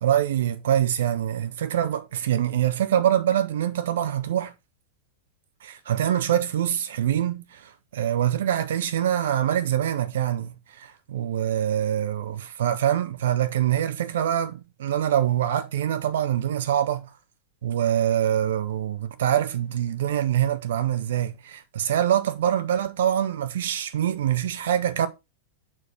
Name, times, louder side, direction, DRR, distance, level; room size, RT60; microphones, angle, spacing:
voice 1, 0.0-4.5 5.6-17.1 17.6-25.1, right 10 dB, 60° right, 0.8 m, -24 dB
6.4 x 4.5 x 4.5 m
figure-of-eight pair, 90°, 0 cm